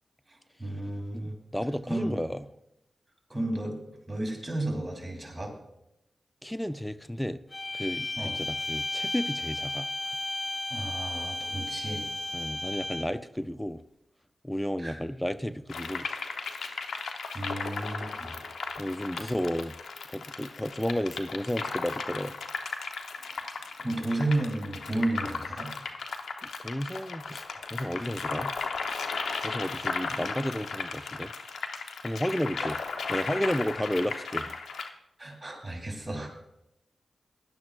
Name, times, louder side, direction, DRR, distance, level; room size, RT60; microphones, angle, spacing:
voice 1, 0.3-1.4 1.9-2.2 3.3-3.8 4.1-5.5 8.2-8.3 10.7-12.1 14.8-15.0 17.3-18.4 23.1-25.7 32.6-32.7 35.2-36.3, right 1 dB, 25° right, 2.8 m, -33 dB
voice 2, 1.1-2.4 6.4-7.4 7.7-9.9 12.3-13.8 14.4-16.1 18.8-19.8 20.1-22.3 26.6-27.4 27.7-28.5 29.4-31.3 32.0-32.8 33.1-34.6, equal, 5° left, 0.4 m, -32 dB
sound 1, 7.5-13.3, left 2 dB, 30° left, 1.3 m, -34 dB
sound 2, 15.7-34.9, left 4 dB, 85° left, 0.8 m, -36 dB
16.5 x 11.0 x 2.4 m
cardioid pair, 45°, 0 cm